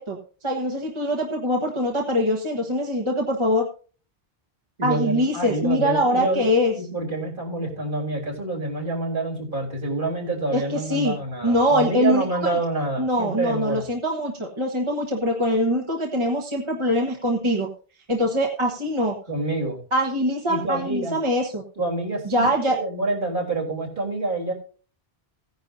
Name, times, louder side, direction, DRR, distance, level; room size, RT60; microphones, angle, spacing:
voice 1, 0.0-3.7 4.8-6.7 10.5-11.2 11.4-12.6 13.0-17.7 18.1-19.2 19.9-21.6 22.2-22.8, equal, 30° right, 0 dB, 1.4 m, -23 dB
voice 2, 4.8-6.4 6.8-13.8 19.3-19.8 20.5-21.2 21.8-24.5, right 2 dB, 55° right, -1 dB, 3.7 m, -27 dB
16.0 x 10.5 x 2.6 m, 0.39 s
omnidirectional pair, 1.1 m